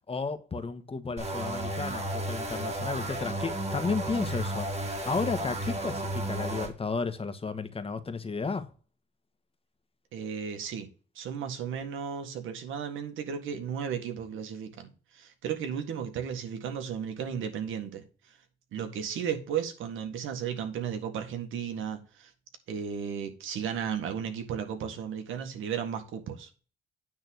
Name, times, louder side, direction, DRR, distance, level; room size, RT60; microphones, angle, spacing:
voice 1, 0.1-8.7, left 4 dB, 30° left, 1.4 m, -33 dB
sound 1, 1.2-6.7, right 1 dB, 35° right, 2.6 m, -33 dB
voice 2, 10.1-10.9 11.2-18.4 18.7-22.3 22.7-26.5, right 8 dB, 85° right, 1.8 m, -34 dB
9.4 x 3.8 x 6.4 m
cardioid pair, 90°, 20 cm